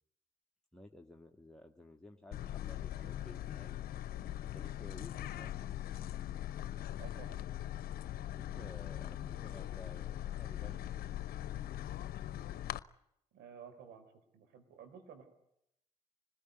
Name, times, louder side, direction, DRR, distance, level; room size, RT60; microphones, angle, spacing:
voice 1, 0.7-3.8 4.4-5.7 8.3-11.2, left 1 dB, 5° left, 1 dB, 2.2 m, -55 dB
sound 1, 2.3-12.8, left 12 dB, 65° left, 0.9 m, -41 dB
voice 2, 7.0-7.4 13.3-15.3, right 7 dB, 75° right, 6 dB, 4.9 m, -54 dB
26.0 x 20.5 x 9.5 m, 0.80 s
hypercardioid pair, 45°, 17 cm